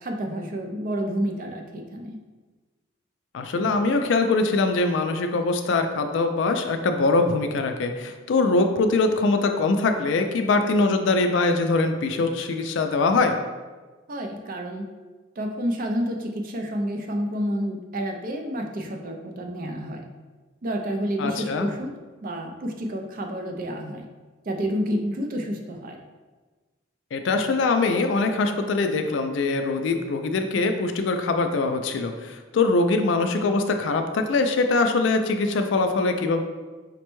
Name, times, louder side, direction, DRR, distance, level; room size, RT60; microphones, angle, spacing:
voice 1, 0.0-2.2 14.1-14.8 15.4-20.0 20.6-21.9 22.2-24.0 24.5-26.0, equal, 45° right, 3 dB, 0.4 m, -29 dB
voice 2, 3.3-13.4 21.2-21.7 27.1-36.4, left 3 dB, 65° left, 6 dB, 0.3 m, -23 dB
5.1 x 2.2 x 3.0 m, 1.3 s
head